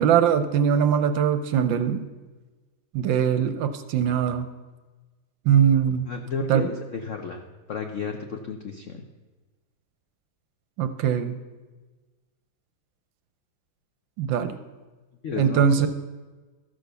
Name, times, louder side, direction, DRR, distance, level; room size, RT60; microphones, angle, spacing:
voice 1, 0.0-2.1 2.9-4.5 5.4-6.1 6.5-6.7 10.8-11.4 14.2-14.6 15.4-15.9, right 8 dB, 70° right, 10 dB, 1.2 m, -21 dB
voice 2, 6.1-9.0 15.2-15.9, left 5 dB, 80° left, 4 dB, 0.6 m, -33 dB
13.0 x 6.4 x 6.8 m, 1.3 s
omnidirectional pair, 2.4 m